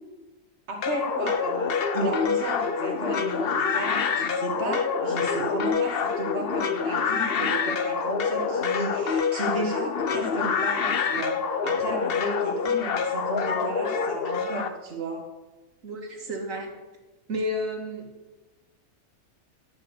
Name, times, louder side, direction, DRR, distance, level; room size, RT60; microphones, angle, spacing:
voice 1, 0.7-15.3, right 1 dB, 50° right, 0 dB, 1.9 m, -33 dB
sound 1, 0.8-14.7, left 6 dB, 50° left, 0.9 m, -26 dB
voice 2, 15.8-16.7 17.3-18.1, left 1 dB, 70° right, 2 dB, 2.4 m, -31 dB
11.5 x 9.7 x 6.9 m, 1.1 s
omnidirectional pair, 1.5 m